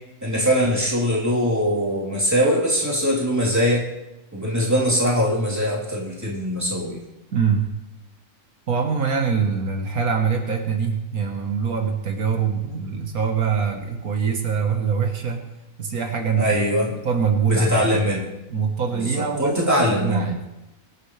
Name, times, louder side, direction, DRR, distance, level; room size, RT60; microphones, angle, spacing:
voice 1, 0.2-3.8 4.3-7.0 16.4-16.9 17.5-18.2 18.9-20.2, equal, 10° right, -5 dB, 3.7 m, -22 dB
voice 2, 7.3-7.7 8.7-15.4 15.8-16.5 17.0-18.0 18.5-20.4, right 6 dB, 80° right, 3 dB, 1.9 m, -24 dB
23.0 x 10.5 x 3.4 m, 0.99 s
omnidirectional pair, 1.5 m